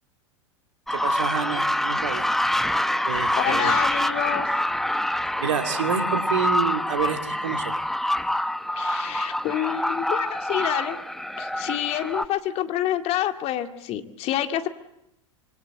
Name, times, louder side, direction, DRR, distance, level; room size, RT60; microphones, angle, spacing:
sound 1, 0.9-12.3, left 1 dB, ahead, 0.9 m, -26 dB
voice 1, 0.9-2.3 3.0-3.7 5.4-7.8, right 7 dB, 75° right, 6 dB, 2.8 m, -28 dB
voice 2, 3.3-4.5 8.8-11.0 11.4-14.7, left 12 dB, 40° left, 7 dB, 2.1 m, -28 dB
26.0 x 24.0 x 7.7 m, 0.81 s
hypercardioid pair, 95°, 16 cm